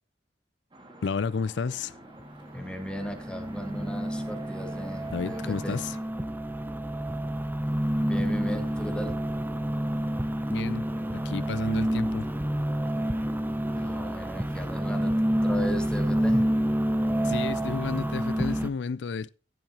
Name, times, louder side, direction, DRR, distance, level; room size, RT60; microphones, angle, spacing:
sound 1, 0.7-6.0, right 1 dB, 25° right, 2.2 m, -48 dB
voice 1, 1.0-2.0 5.1-5.9 10.5-10.9 11.1-12.3 17.2-19.3, left 5 dB, 70° left, 0.4 m, -31 dB
sound 2, 2.2-18.7, equal, 10° right, 0.6 m, -28 dB
voice 2, 2.5-5.8 8.0-9.2 13.7-16.5, equal, 5° left, 1.5 m, -36 dB
15.0 x 7.3 x 2.9 m
head